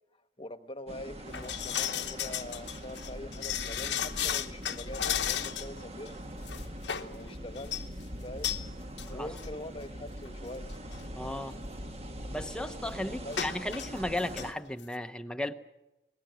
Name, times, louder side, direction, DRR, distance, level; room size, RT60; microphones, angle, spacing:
voice 1, 0.4-6.1 7.0-7.8 8.2-10.7 13.1-13.4, left 1 dB, 30° left, 1.2 m, -44 dB
sound 1, 0.9-14.5, equal, 35° right, 1.3 m, -42 dB
sound 2, 1.3-5.8 6.1-6.2 6.5-7.1 7.6-7.9 8.4-8.6 9.0-9.1 9.4-9.5 10.3-10.4 10.7-10.9 13.3-13.9 14.2-14.5 14.8-14.9, left 10 dB, 90° left, 1.1 m, -34 dB
voice 2, 11.2-11.6 12.3-15.5, left 1 dB, 5° left, 0.9 m, -35 dB
29.0 x 20.0 x 6.3 m
head